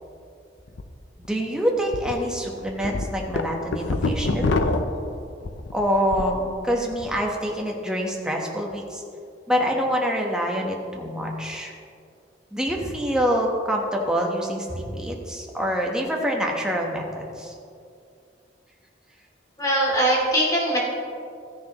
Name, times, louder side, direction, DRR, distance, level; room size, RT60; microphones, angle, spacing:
sound 1, 0.7-0.8 1.2-1.3 1.9-2.1 2.6-6.4 6.7-7.2, left 2 dB, 90° left, 0.7 m, -26 dB
voice 1, 1.2-4.6 5.7-9.0 9.5-11.7 12.5-17.5, equal, 5° right, -1 dB, 1.0 m, -26 dB
voice 2, 19.6-20.8, right 1 dB, 20° left, -4 dB, 2.6 m, -21 dB
14.0 x 10.0 x 3.0 m, 2.4 s
head